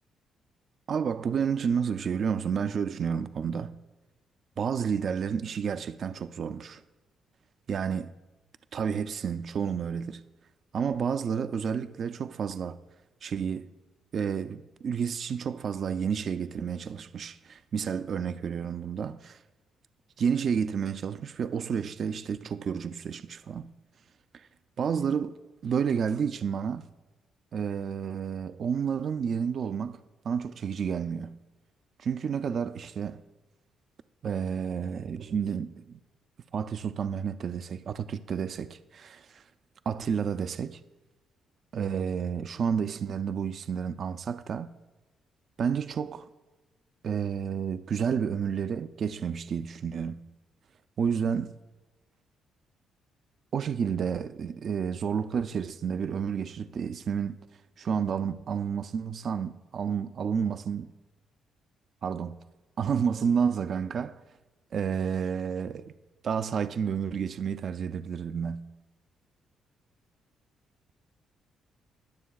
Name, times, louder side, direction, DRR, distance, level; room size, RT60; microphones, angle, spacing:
voice 1, 0.9-3.8 4.6-6.8 7.7-8.1 8.7-10.2 10.7-12.8 13.2-13.7 14.1-19.4 20.2-23.7 24.3-24.5 24.8-25.4 25.6-26.9 27.5-30.0 30.2-31.4 32.0-33.2 34.2-36.0 36.5-39.4 39.9-40.8 41.7-44.7 45.6-46.3 47.0-50.2 51.0-51.5 53.5-57.4 57.8-60.9 62.0-62.4 62.8-64.2 64.7-65.9 66.2-68.7, right 7 dB, 55° right, 0.4 m, -30 dB
21.0 x 7.2 x 2.3 m
cardioid pair, 90°, 0 cm